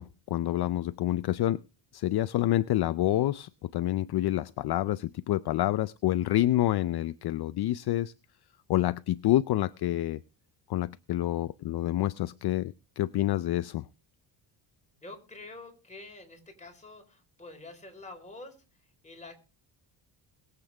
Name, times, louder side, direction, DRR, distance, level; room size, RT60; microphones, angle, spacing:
voice 1, 0.0-1.6 1.9-8.1 8.7-10.2 10.7-13.9, left 14 dB, 55° left, 0.6 m, -28 dB
voice 2, 15.0-18.6 19.0-19.4, left 2 dB, 15° left, 4.2 m, -47 dB
21.5 x 8.3 x 3.4 m
cardioid pair, 155°, 47 cm